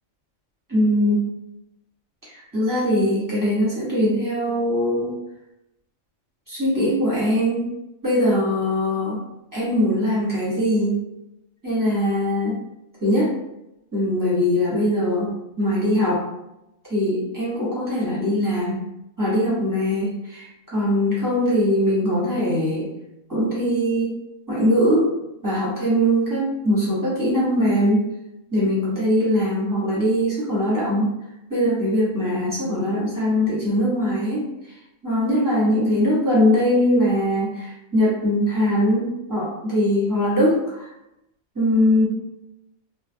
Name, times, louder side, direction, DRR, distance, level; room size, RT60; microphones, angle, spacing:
voice 1, 0.7-1.2 2.3-5.1 6.5-7.7 8.0-9.2 9.5-11.0 11.6-12.6 13.0-13.3 13.9-16.2 16.9-18.8 19.2-22.9 23.3-24.1 24.5-25.1 25.4-28.1 28.5-31.1 31.5-34.5 35.0-40.9 41.5-42.1, equal, 20° right, -9 dB, 0.7 m, -21 dB
2.4 x 2.1 x 2.6 m, 0.90 s
omnidirectional pair, 1.4 m